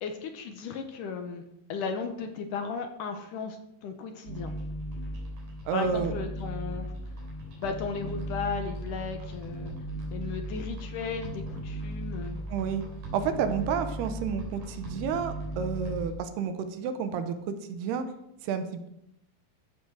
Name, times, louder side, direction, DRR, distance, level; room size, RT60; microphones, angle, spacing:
voice 1, 0.0-1.4 1.7-4.5 5.7-6.9 7.6-9.7 10.1-12.4, left 5 dB, 70° left, 6 dB, 2.2 m, -35 dB
sound 1, 4.3-16.1, right 1 dB, 55° right, 4.6 m, -37 dB
voice 2, 5.7-6.1 12.5-12.8 13.1-18.1 18.4-18.9, right 6 dB, 90° right, 9 dB, 3.1 m, -30 dB
14.0 x 7.4 x 6.3 m, 0.81 s
omnidirectional pair, 4.5 m